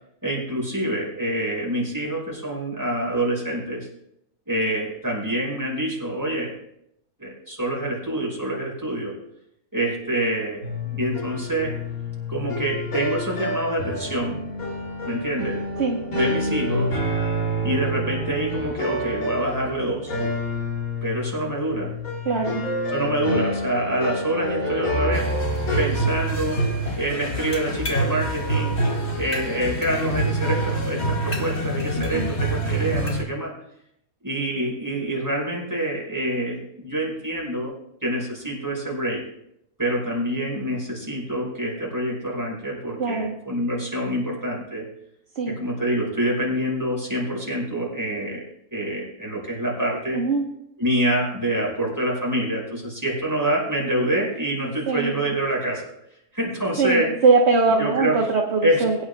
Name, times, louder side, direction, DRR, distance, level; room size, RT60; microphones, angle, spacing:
voice 1, 0.2-3.9 4.5-6.5 7.2-9.2 9.7-10.6 10.9-11.7 12.3-14.4 15.1-15.6 16.1-17.0 17.6-20.1 21.0-21.9 22.9-25.3 25.8-26.6 27.0-28.8 29.2-33.5 34.2-37.7 38.0-39.2 39.8-44.9 45.5-48.4 48.7-50.2 50.8-55.8 56.3-57.1 57.8-58.2 58.6-58.8, right 1 dB, 15° right, -4 dB, 5.5 m, -26 dB
sound 1, 10.6-25.8, equal, 85° left, 3.2 m, -28 dB
voice 2, 22.3-22.6 32.1-32.3 43.0-43.3 45.4-45.6 50.1-50.4 54.6-55.2 56.8-59.0, right 4 dB, 55° right, 1 dB, 1.3 m, -21 dB
sound 2, 25.1-33.2, right 2 dB, 50° left, 2.1 m, -26 dB
22.5 x 10.0 x 2.2 m, 0.77 s
omnidirectional pair, 1.5 m